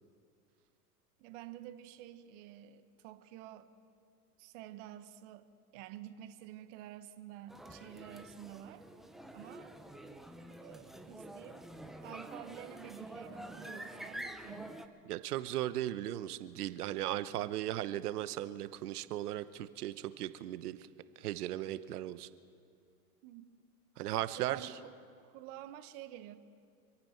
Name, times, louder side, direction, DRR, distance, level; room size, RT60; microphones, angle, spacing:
voice 1, 1.2-3.7 4.4-5.5 5.7-8.9 9.3-9.7 10.6-11.7 12.0-14.7 20.8-20.9 23.2-23.4 24.4-26.4, right 12 dB, 50° right, 10 dB, 1.3 m, -50 dB
sound 1, 7.5-14.9, right 1 dB, ahead, 0.5 m, -47 dB
voice 2, 15.1-20.8 21.2-22.3 24.0-24.7, right 13 dB, 70° right, 14 dB, 1.0 m, -37 dB
27.0 x 9.0 x 5.8 m, 2.3 s
hypercardioid pair, 115°, 48 cm